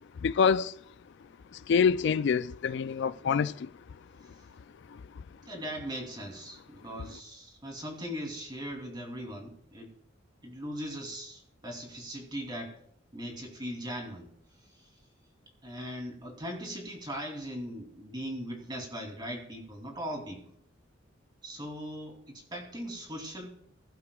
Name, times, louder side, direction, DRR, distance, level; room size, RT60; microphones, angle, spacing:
voice 1, 0.2-0.7 1.5-3.7, left 6 dB, 65° left, 0.3 m, -26 dB
voice 2, 5.5-9.9 10.4-12.8 13.1-14.3 14.6-15.0 15.6-20.4 21.4-23.5, equal, 25° right, 3.0 m, -39 dB
21.0 x 11.5 x 2.3 m
head